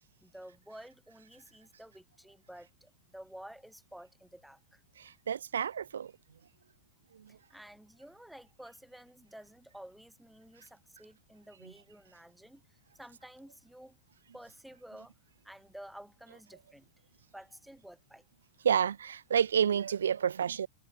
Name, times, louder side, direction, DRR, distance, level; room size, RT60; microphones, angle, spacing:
voice 1, 0.2-4.8 7.3-14.0 14.3-15.1 15.4-16.9 17.3-18.3, right 1 dB, ahead, 5.1 m, -52 dB
voice 2, 5.0-6.1 7.1-7.4 11.6-11.7 18.6-20.7, right 8 dB, 65° right, 0.5 m, -30 dB
figure-of-eight pair, 90°, 0 cm